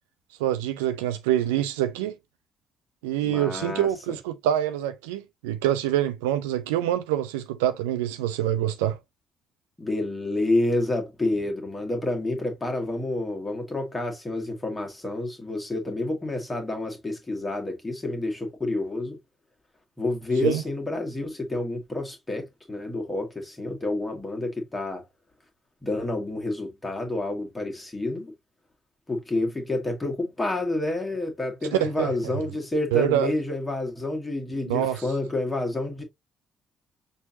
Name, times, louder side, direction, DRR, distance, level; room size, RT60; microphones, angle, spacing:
voice 1, 0.4-2.1 3.0-9.0 20.4-20.6 31.8-32.1 32.9-33.3 34.6-35.0, right 12 dB, 70° right, 0.3 m, -25 dB
voice 2, 3.2-3.9 9.8-19.2 20.0-25.0 25.8-28.3 29.1-36.0, left 2 dB, 15° left, 1.5 m, -29 dB
6.0 x 2.7 x 2.7 m
figure-of-eight pair, 45°, 0 cm